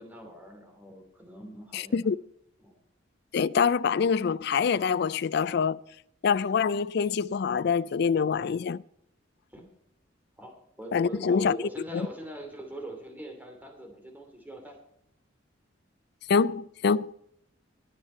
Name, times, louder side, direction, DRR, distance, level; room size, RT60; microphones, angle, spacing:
voice 1, 0.0-2.0 2.6-2.8 9.5-9.7 10.4-14.8 16.5-16.6, right 1 dB, 10° right, 2.7 m, -42 dB
voice 2, 1.7-2.2 3.3-5.8 6.2-8.8 10.9-11.6 11.9-12.1 16.3-17.1, left 6 dB, 55° left, 0.4 m, -25 dB
21.0 x 7.3 x 4.4 m
head